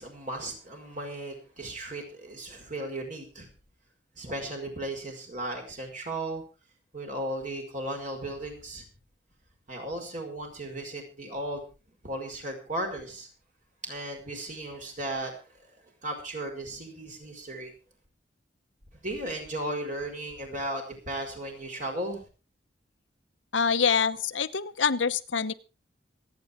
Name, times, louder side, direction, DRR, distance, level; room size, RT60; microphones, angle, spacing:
voice 1, 0.0-3.5 4.1-6.4 6.9-8.9 9.7-11.6 12.0-13.3 13.8-15.8 16.0-17.7 18.9-22.3, right 1 dB, 45° right, 3 dB, 5.1 m, -36 dB
voice 2, 23.5-25.5, left 6 dB, 85° left, 10 dB, 0.9 m, -25 dB
26.5 x 9.3 x 3.7 m, 0.32 s
head